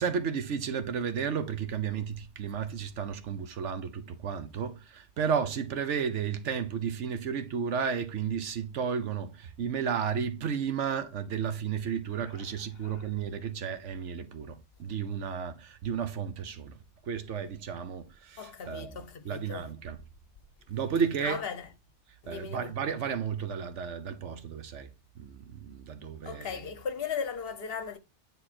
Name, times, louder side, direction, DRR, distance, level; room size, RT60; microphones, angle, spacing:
voice 1, 0.0-16.8 17.1-20.0 20.7-21.4 22.3-24.9 25.2-26.6, right 7 dB, 90° right, 1.2 m, -33 dB
voice 2, 12.2-13.1 18.4-19.7 21.2-21.7 22.2-22.7 26.2-28.0, left 6 dB, 60° left, 1.1 m, -38 dB
10.0 x 3.7 x 4.2 m
omnidirectional pair, 1.2 m